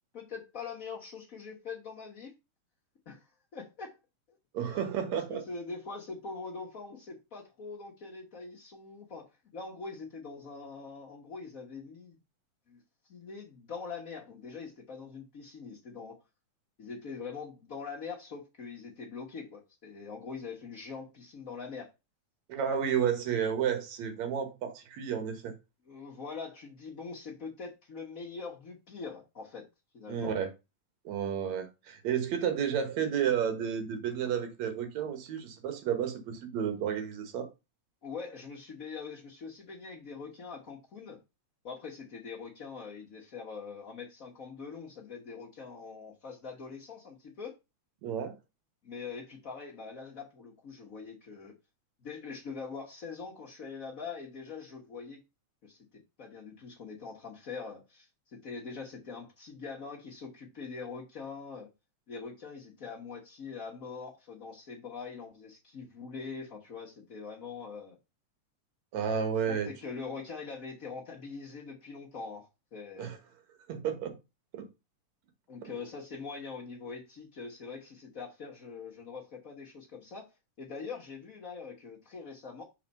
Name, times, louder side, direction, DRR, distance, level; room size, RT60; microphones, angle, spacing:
voice 1, 0.1-2.3 3.1-3.3 3.5-3.9 5.1-12.2 12.7-12.8 13.1-16.2 16.8-21.9 25.9-29.6 29.9-30.3 38.0-41.2 41.6-47.5 48.8-51.5 52.0-55.2 55.6-55.8 56.2-61.7 62.1-68.0 69.5-73.1 75.5-80.3 80.6-82.6, left 5 dB, 70° left, 0.8 m, -43 dB
voice 2, 4.5-5.4 22.5-25.5 30.1-30.5 31.1-37.5 48.0-48.4 68.9-69.7 73.0-73.2 73.7-74.2 74.5-74.7 75.6-75.7, right 8 dB, 70° right, 2.4 m, -31 dB
5.8 x 3.9 x 5.3 m
omnidirectional pair, 3.4 m